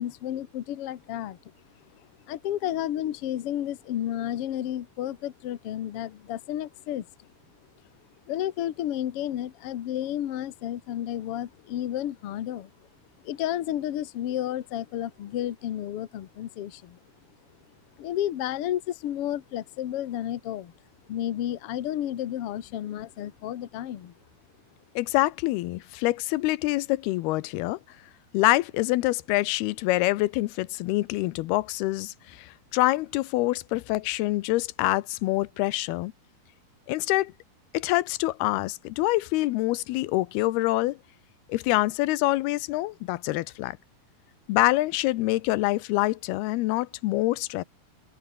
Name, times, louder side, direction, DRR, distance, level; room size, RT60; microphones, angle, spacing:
voice 1, 0.0-1.4 2.3-7.1 8.3-12.7 13.2-17.0 18.0-20.7 21.1-24.1, left 12 dB, 70° left, 1.4 m, -31 dB
voice 2, 25.0-27.8 28.3-36.1 36.9-37.3 37.7-41.0 41.5-43.8 44.5-47.6, left 19 dB, 90° left, 2.7 m, -26 dB
open air
omnidirectional pair, 4.4 m